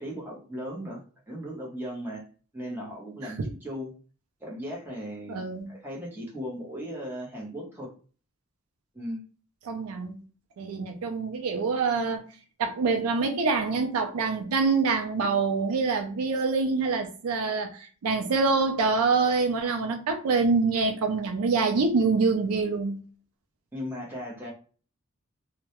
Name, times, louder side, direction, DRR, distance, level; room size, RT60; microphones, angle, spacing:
voice 1, 0.0-2.2 2.5-3.9 4.4-7.9 8.9-9.2 23.7-24.5, equal, 10° right, 0.7 m, -37 dB
voice 2, 5.3-5.7 9.7-10.2 10.6-12.2 12.6-23.0, right 4 dB, 90° right, 0.4 m, -25 dB
2.2 x 2.0 x 2.8 m
head